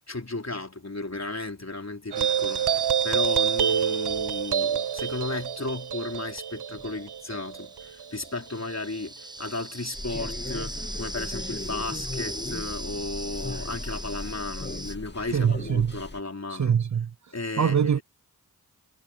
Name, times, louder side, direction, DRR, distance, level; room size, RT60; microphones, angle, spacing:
voice 1, 0.1-16.8 17.3-18.0, left 3 dB, 40° left, 4.2 m, -34 dB
sound 1, 2.1-8.9, right 9 dB, 85° right, 0.7 m, -27 dB
sound 2, 2.2-15.0, right 1 dB, 10° right, 0.9 m, -41 dB
sound 3, 9.9-16.2, left 2 dB, 25° left, 2.4 m, -37 dB
voice 2, 15.3-15.9 16.5-17.1 17.6-18.0, right 7 dB, 50° right, 0.5 m, -23 dB
cardioid pair, 40°, 39 cm